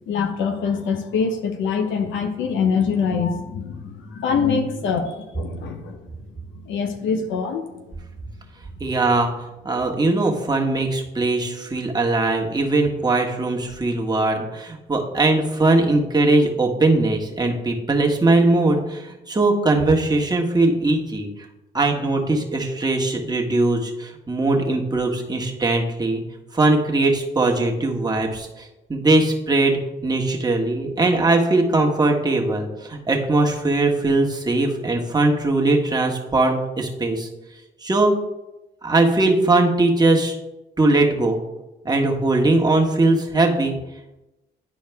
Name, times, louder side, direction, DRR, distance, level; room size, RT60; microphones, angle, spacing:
voice 1, 0.1-6.0 6.7-7.6, left 5 dB, 85° left, 5 dB, 0.9 m, -24 dB
voice 2, 8.8-21.3 21.7-26.2 26.5-37.3 37.8-38.1 38.8-40.4 40.8-41.4 41.8-43.8, right 2 dB, 20° right, 0 dB, 1.5 m, -20 dB
11.0 x 4.6 x 3.5 m, 0.99 s
cardioid pair, 65°, 19 cm